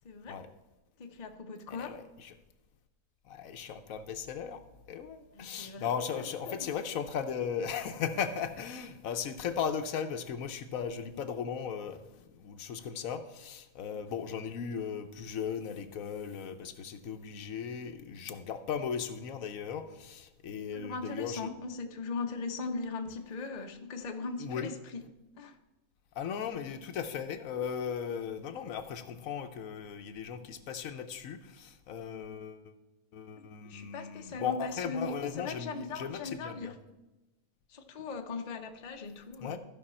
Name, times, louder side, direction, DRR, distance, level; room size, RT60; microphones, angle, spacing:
voice 1, 0.0-0.4 1.0-2.0 5.3-5.9 6.5-6.6 20.7-25.0 25.4-25.6 33.3-36.7 37.7-39.6, left 4 dB, 35° left, 0.8 m, -39 dB
voice 2, 1.7-2.3 3.2-21.5 24.4-24.7 26.1-32.7 33.1-36.7 39.4-39.6, left 7 dB, 75° left, 1.1 m, -37 dB
14.0 x 5.5 x 4.3 m
omnidirectional pair, 1.5 m